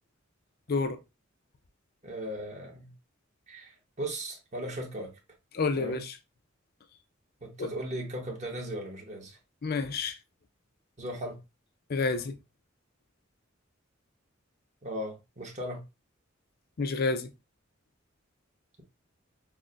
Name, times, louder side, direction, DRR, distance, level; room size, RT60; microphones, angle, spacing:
voice 1, 0.7-1.0 5.5-6.1 7.6-7.7 9.6-10.2 11.9-12.4 16.8-17.3, left 4 dB, 50° left, 0.5 m, -29 dB
voice 2, 2.0-2.9 3.5-5.1 5.8-6.0 7.4-9.4 11.0-11.4 14.8-15.8, right 1 dB, 35° right, 1.1 m, -37 dB
6.1 x 2.1 x 2.5 m
head